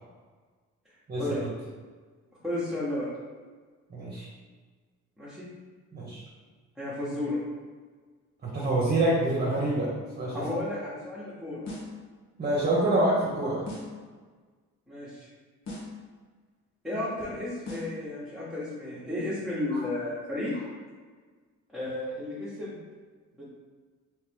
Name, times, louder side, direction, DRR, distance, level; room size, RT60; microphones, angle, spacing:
voice 1, 2.4-3.1 5.2-5.5 6.8-7.4 10.3-11.7 14.9-15.3 16.8-20.5 21.7-22.8 23.3-23.5, left 1 dB, ahead, -11 dB, 1.2 m, -33 dB
voice 2, 3.9-4.3 5.9-6.2 8.4-9.9 10.2-10.4 12.4-13.6 19.7-19.8, right 1 dB, 30° right, -6 dB, 1.0 m, -26 dB
sound 1, 11.6-12.0 13.7-14.0 15.6-16.0 17.7-18.0, left 2 dB, 60° left, 1.2 m, -39 dB
3.1 x 3.0 x 3.4 m, 1.5 s
cardioid pair, 90°, 30 cm